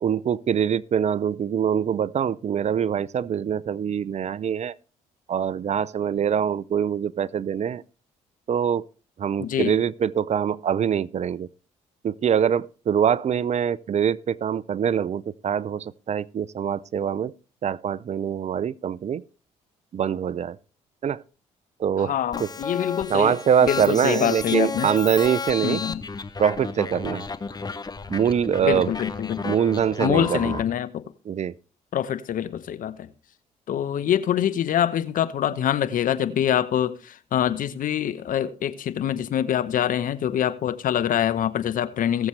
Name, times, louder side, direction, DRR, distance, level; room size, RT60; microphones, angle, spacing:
voice 1, 0.0-4.7 5.3-7.8 8.5-8.8 9.2-11.5 12.0-17.3 17.6-19.2 19.9-20.6 21.0-21.2 21.8-22.1 22.4-22.5 23.1-25.8 26.4-27.2 28.1-28.9 29.4-30.6 31.3-31.5, right 8 dB, 45° right, 0.6 m, -24 dB
voice 2, 9.4-9.8 22.0-23.4 23.6-24.9 25.6-26.0 28.6-29.4 30.0-31.0 31.9-33.1 33.7-42.3, left 10 dB, 60° left, 0.9 m, -25 dB
sound 1, 22.3-30.6, left 4 dB, 25° left, 1.0 m, -33 dB
19.0 x 7.2 x 3.3 m
hypercardioid pair, 55°, 16 cm